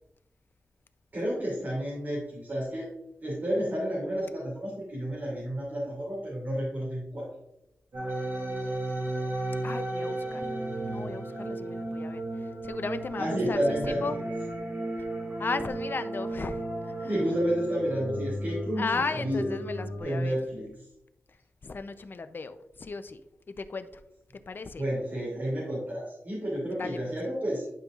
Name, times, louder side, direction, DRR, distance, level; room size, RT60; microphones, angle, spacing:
voice 1, 1.1-2.9 3.2-7.3 13.2-14.3 17.1-19.5 20.0-20.7 24.8-27.6, equal, 45° right, -7 dB, 2.8 m, -31 dB
sound 1, 7.9-20.0, right 1 dB, 60° right, 2.0 m, -34 dB
voice 2, 9.6-10.5 10.9-12.2 12.6-13.6 13.8-14.2 15.4-16.6 17.0-17.1 18.8-20.4 21.6-23.2 23.6-23.9 24.5-24.8 26.8-27.0, left 4 dB, 45° left, 10 dB, 0.5 m, -35 dB
11.0 x 5.4 x 2.4 m, 0.87 s
wide cardioid pair, 150°, 5 cm